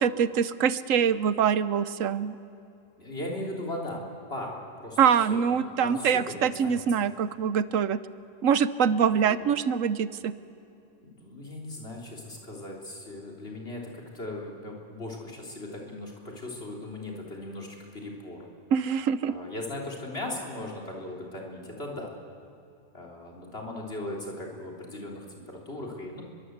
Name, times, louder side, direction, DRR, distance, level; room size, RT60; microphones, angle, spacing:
voice 1, 0.0-2.4 5.0-8.0 8.4-10.3 18.7-19.3, right 7 dB, 85° right, 14 dB, 1.2 m, -24 dB
voice 2, 3.0-4.0 4.3-5.0 5.3-6.8 9.2-9.5 11.0-18.5 19.3-22.1 22.9-26.2, left 1 dB, 50° left, -1 dB, 3.8 m, -38 dB
28.5 x 22.5 x 8.0 m, 2.7 s
omnidirectional pair, 1.3 m